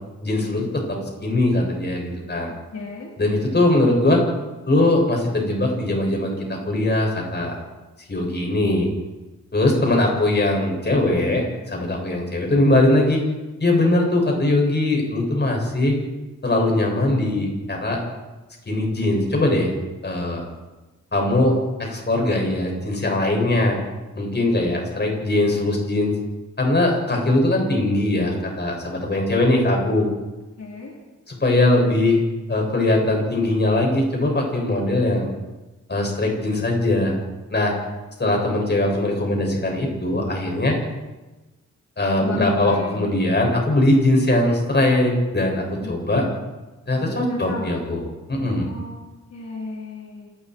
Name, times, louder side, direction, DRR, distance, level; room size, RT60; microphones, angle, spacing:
voice 1, 0.2-2.5 3.2-4.2 4.7-7.6 8.1-8.9 9.5-13.2 13.6-16.0 16.4-18.0 18.7-19.7 20.0-20.4 21.1-21.5 21.8-23.8 24.1-26.1 26.6-30.1 31.3-32.2 32.5-35.3 35.9-37.2 37.5-37.7 38.2-40.8 42.0-46.3 46.9-48.7, left 1 dB, 35° left, 0 dB, 7.5 m, -21 dB
voice 2, 2.7-3.1 30.6-30.9 42.2-43.3 46.2-46.3 47.0-47.6 48.7-49.0 49.3-50.3, left 2 dB, 65° left, -3 dB, 4.5 m, -33 dB
28.0 x 19.5 x 4.9 m, 1.1 s
wide cardioid pair, 110°, 30 cm